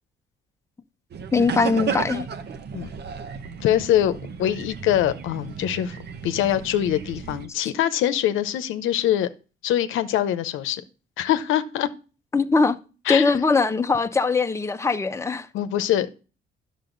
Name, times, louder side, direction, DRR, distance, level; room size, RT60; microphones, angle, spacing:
sound 1, 1.1-7.5, right 6 dB, 55° right, 1.0 m, -34 dB
voice 1, 1.3-2.3 12.3-12.8 13.1-15.5, left 4 dB, 15° left, 0.7 m, -21 dB
voice 2, 3.6-6.0 6.2-9.3 9.6-10.8 11.2-11.9 13.1-13.3 15.5-16.1, left 11 dB, 85° left, 0.8 m, -23 dB
10.0 x 6.6 x 3.8 m
cardioid pair, 90°, 20 cm